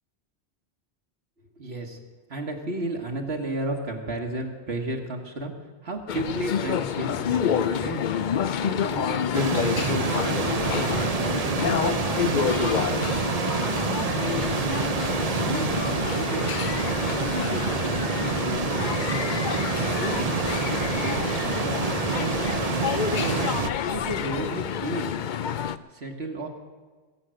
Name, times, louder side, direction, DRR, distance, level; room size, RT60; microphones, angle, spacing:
voice 1, 1.6-2.0 2.3-5.5 5.8-8.0 8.6-10.4 10.8-11.4 11.8-13.4 14.0-15.1 15.5-16.5 17.1-19.2 19.7-22.6 23.1-23.5 23.9-25.1 25.9-26.5, right 2 dB, 65° right, 1 dB, 2.0 m, -34 dB
sound 1, 6.1-25.8, left 8 dB, 55° left, 0.6 m, -28 dB
sound 2, 9.3-23.7, right 6 dB, 45° right, 0.6 m, -28 dB
sound 3, 11.2-25.2, left 3 dB, 75° left, 1.4 m, -45 dB
19.5 x 8.2 x 7.7 m, 1.4 s
omnidirectional pair, 1.1 m